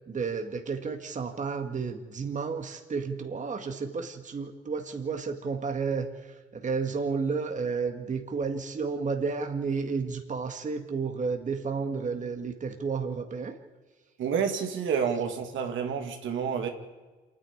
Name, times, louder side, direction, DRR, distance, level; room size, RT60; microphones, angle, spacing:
voice 1, 0.1-13.6 15.1-15.2, right 5 dB, 40° right, 2.1 m, -32 dB
voice 2, 14.2-16.7, right 7 dB, 75° right, 2.5 m, -29 dB
27.5 x 10.5 x 10.0 m
cardioid pair, 90°, 20 cm